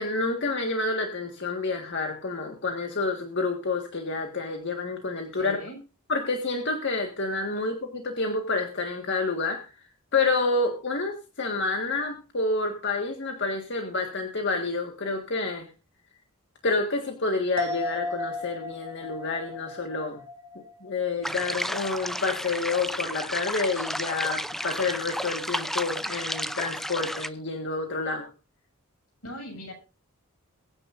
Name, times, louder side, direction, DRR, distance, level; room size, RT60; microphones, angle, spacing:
voice 1, 0.0-5.6 6.1-9.7 10.1-15.7 16.6-20.2 20.5-28.3, left 3 dB, 55° left, 3 dB, 1.7 m, -29 dB
voice 2, 5.3-5.8 29.2-29.7, equal, 75° left, 3 dB, 6.7 m, -39 dB
sound 1, 17.6-21.3 21.6-21.7, left 2 dB, 65° right, 2.2 m, -35 dB
sound 2, 21.2-27.3, equal, ahead, 0.5 m, -32 dB
22.5 x 9.9 x 2.6 m, 0.33 s
head